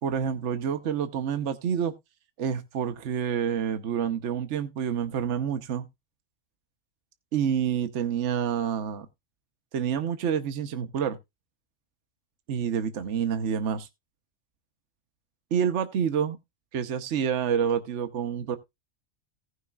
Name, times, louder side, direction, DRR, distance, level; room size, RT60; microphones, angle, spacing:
voice 1, 0.0-1.9 2.4-5.8 7.3-9.1 9.7-11.2 12.5-13.9 15.5-16.4 16.7-18.6, right 8 dB, 65° right, 1.2 m, -28 dB
17.5 x 6.3 x 2.4 m
omnidirectional pair, 1.3 m